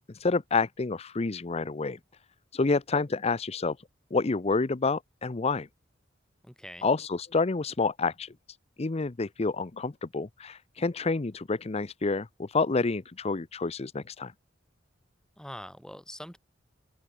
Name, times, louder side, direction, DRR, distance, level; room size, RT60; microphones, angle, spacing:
voice 1, 0.0-2.0 2.5-3.8 4.1-5.7 6.8-8.3 8.8-14.3, left 3 dB, 35° left, 0.6 m, -28 dB
voice 2, 6.4-6.9 15.4-16.4, equal, 5° left, 6.7 m, -43 dB
open air
head